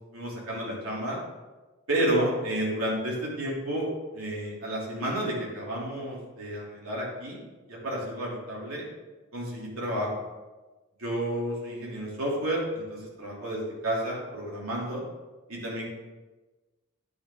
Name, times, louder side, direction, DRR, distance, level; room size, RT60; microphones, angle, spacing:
voice 1, 0.1-1.2 1.9-3.9 4.1-7.4 7.7-8.9 9.3-10.1 11.0-15.0 15.5-15.9, right 1 dB, 80° right, -4 dB, 3.0 m, -31 dB
10.0 x 6.3 x 3.7 m, 1.2 s
head